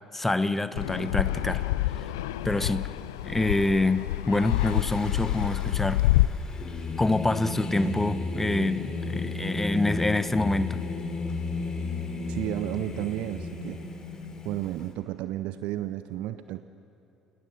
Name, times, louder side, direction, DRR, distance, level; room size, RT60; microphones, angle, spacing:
voice 1, 0.1-1.6 2.0-2.1 2.4-2.9 3.2-6.1 7.0-10.8, left 2 dB, 10° left, 13 dB, 1.1 m, -26 dB
Fixed-wing aircraft airplane, 0.8-6.3, left 15 dB, 70° left, 0.6 m, -27 dB
Singing, 4.4-14.9, left 3 dB, 35° left, 3.2 m, -34 dB
voice 2, 12.3-13.8 14.4-16.6, right 14 dB, 60° right, 12 dB, 0.6 m, -32 dB
29.5 x 21.0 x 6.6 m, 2.9 s
figure-of-eight pair, 55°, 2 cm